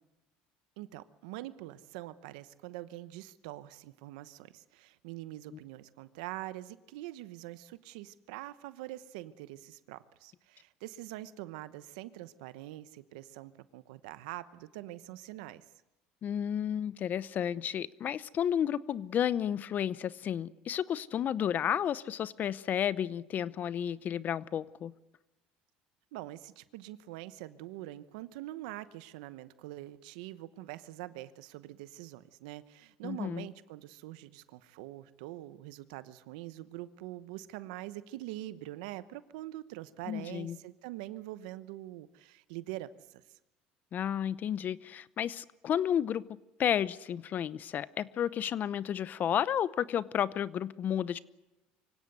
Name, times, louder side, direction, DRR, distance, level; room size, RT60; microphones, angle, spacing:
voice 1, 0.8-15.6 26.1-43.2, right 16 dB, 85° right, 14 dB, 1.0 m, -44 dB
voice 2, 16.2-24.9 33.0-33.5 40.1-40.6 43.9-51.2, left 9 dB, 50° left, 18 dB, 0.8 m, -32 dB
25.0 x 17.0 x 8.2 m, 1.0 s
supercardioid pair, 90°, 4 cm